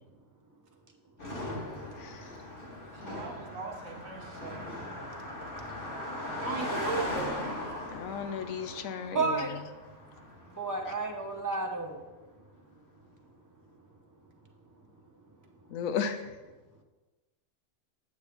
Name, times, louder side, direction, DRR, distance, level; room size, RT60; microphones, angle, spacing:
Car passing by, 1.2-10.8, left 1 dB, 40° left, 1.6 m, -39 dB
voice 1, 3.0-4.8 6.4-7.3, right 4 dB, 75° right, 1 dB, 1.4 m, -37 dB
voice 2, 7.9-9.6 15.7-16.2, left 7 dB, 85° left, 9 dB, 1.1 m, -34 dB
voice 3, 9.1-9.5 10.6-12.0, right 3 dB, 20° right, 2 dB, 0.6 m, -31 dB
8.1 x 8.0 x 3.5 m, 1.2 s
omnidirectional pair, 1.4 m